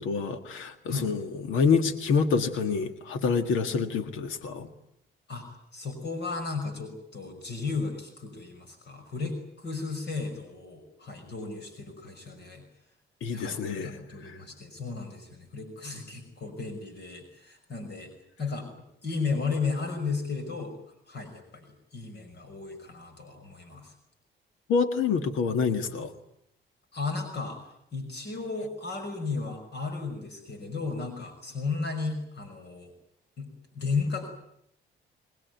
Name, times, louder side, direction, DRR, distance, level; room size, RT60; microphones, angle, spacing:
voice 1, 0.0-4.7 13.2-14.0 14.2-14.4 24.7-26.1, left 5 dB, 85° left, 9 dB, 1.8 m, -27 dB
voice 2, 5.3-12.6 13.3-18.1 18.4-18.7 19.0-20.7 21.1-23.9 26.9-32.9 33.4-33.5 33.7-34.3, left 4 dB, 60° left, 6 dB, 5.8 m, -34 dB
25.5 x 19.5 x 9.4 m, 0.75 s
cardioid pair, 90°, 20 cm